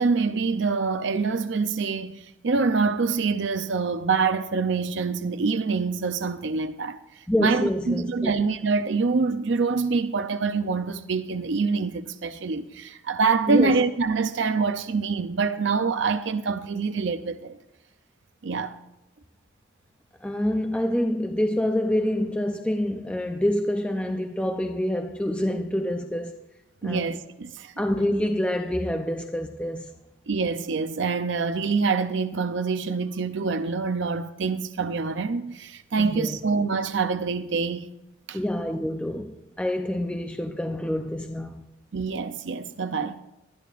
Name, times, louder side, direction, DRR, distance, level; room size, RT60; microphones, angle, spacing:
voice 1, 0.0-7.0 7.4-17.6 18.4-18.8 26.8-27.7 30.3-37.9 38.3-38.4 41.9-43.2, right 4 dB, 65° right, 0.5 m, -25 dB
voice 2, 7.3-8.3 13.5-13.8 20.2-26.3 26.8-27.0 27.8-29.9 36.0-36.4 38.3-41.6, left 1 dB, 5° left, 0.5 m, -26 dB
20.5 x 13.0 x 2.5 m
head